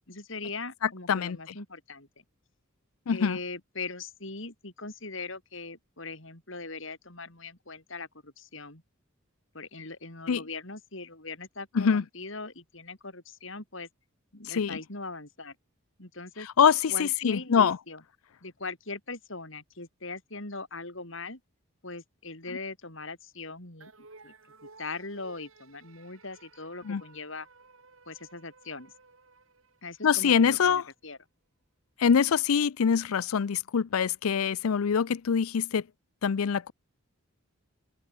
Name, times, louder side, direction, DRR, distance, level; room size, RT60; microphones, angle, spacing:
voice 1, 0.1-2.1 3.1-8.8 9.5-13.9 14.3-15.5 16.0-16.5 16.9-18.0 18.4-21.4 21.8-24.3 24.8-27.5 28.1-28.9 29.8-31.2, left 3 dB, 60° left, 5.1 m, -40 dB
voice 2, 3.1-3.4 10.3-10.4 11.7-12.0 14.5-14.8 16.6-17.8 26.8-27.0 30.0-30.8 32.0-35.8 36.2-36.7, left 7 dB, 80° left, 0.5 m, -24 dB
sound 1, 23.8-30.4, right 3 dB, 70° right, 2.9 m, -55 dB
open air
head